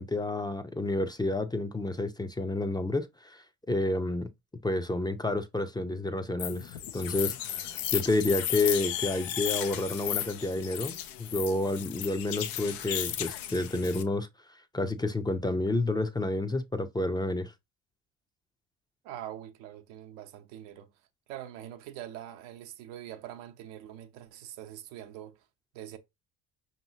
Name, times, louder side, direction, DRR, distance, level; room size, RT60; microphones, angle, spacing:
voice 1, 0.0-4.3 4.6-14.3 14.7-17.5, left 2 dB, 10° left, 0.5 m, -30 dB
sound 1, 6.4-14.0, left 11 dB, 85° left, 0.7 m, -34 dB
voice 2, 19.0-20.9 21.3-25.5 25.7-26.0, right 12 dB, 80° right, 0.8 m, -44 dB
5.3 x 2.9 x 2.7 m
hypercardioid pair, 70°, 38 cm